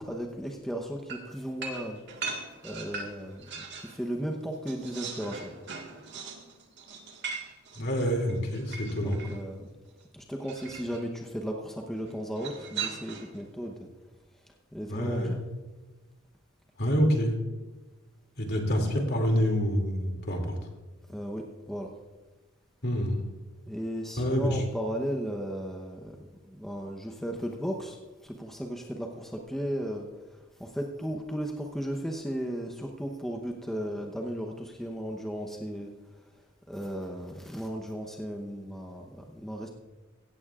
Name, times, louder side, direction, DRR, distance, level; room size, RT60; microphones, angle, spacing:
voice 1, 0.0-2.0 2.6-5.5 9.0-9.7 10.1-13.9 14.7-15.4 21.1-21.9 23.7-26.2 26.5-30.1 30.6-35.9 36.7-39.7, equal, ahead, 1 dB, 0.9 m, -35 dB
sound 1, 1.1-4.0 4.3-9.4 10.4-11.0 12.4-13.4, right 5 dB, 60° right, 1.7 m, -40 dB
voice 2, 7.7-9.2 14.9-15.3 16.8-17.3 18.4-20.6 22.8-23.2 24.2-24.6, equal, 50° left, 2 dB, 2.6 m, -27 dB
16.5 x 15.0 x 2.5 m, 1.2 s
head